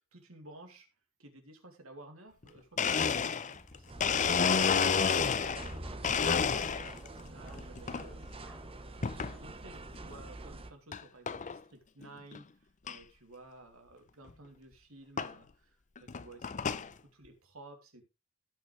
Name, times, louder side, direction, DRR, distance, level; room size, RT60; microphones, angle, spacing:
voice 1, 0.1-0.9 1.2-3.9 4.2-8.3 8.9-12.5 12.8-18.0, right 1 dB, 65° right, 3.0 m, -54 dB
Domestic sounds home sounds, 2.4-2.5 2.8-5.7 6.0-7.1 7.5-8.0 9.0-9.3 9.9-10.0 10.9-11.0 11.3-11.6 12.0-12.1 12.3-12.4 12.9-13.0 14.3-14.4 15.2-15.3 16.0-16.9, left 6 dB, 35° left, 0.6 m, -30 dB
Bark, 3.5-10.6, left 1 dB, ahead, 1.7 m, -53 dB
sound 1, 3.9-10.7, right 2 dB, 25° right, 1.1 m, -46 dB
17.5 x 6.0 x 3.3 m
head